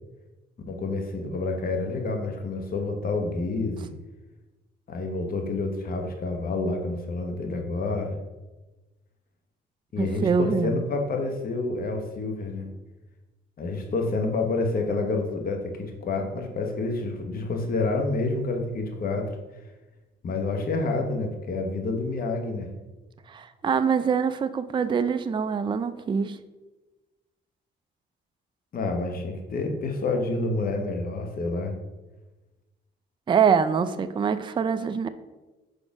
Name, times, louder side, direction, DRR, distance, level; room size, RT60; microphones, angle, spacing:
voice 1, 0.7-3.9 4.9-8.2 9.9-12.7 13.6-19.4 20.2-22.7 28.7-31.8, left 3 dB, 45° left, 3 dB, 0.9 m, -28 dB
voice 2, 10.0-10.8 23.3-26.4 33.3-35.1, right 6 dB, 25° right, 10 dB, 0.4 m, -24 dB
4.8 x 4.3 x 5.9 m, 1.1 s
cardioid pair, 90°, 20 cm